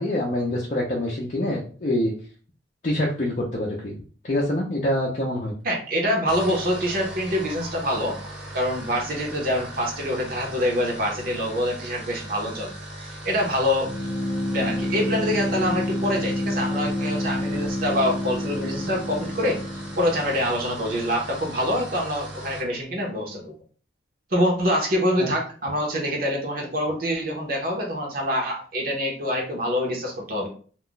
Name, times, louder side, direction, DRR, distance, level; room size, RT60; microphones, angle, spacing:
voice 1, 0.0-2.1 2.8-3.9 4.2-5.5 25.2-25.3, left 1 dB, 40° left, -3 dB, 0.5 m, -25 dB
voice 2, 5.6-8.2 8.5-12.7 13.0-13.9 14.5-19.6 20.0-23.5 24.3-30.5, equal, 50° right, 0 dB, 0.7 m, -25 dB
sound 1, 6.3-22.7, right 1 dB, 5° right, 0.8 m, -39 dB
sound 2, 13.8-20.5, left 1 dB, 80° left, 0.6 m, -28 dB
2.3 x 2.1 x 3.7 m, 0.41 s
head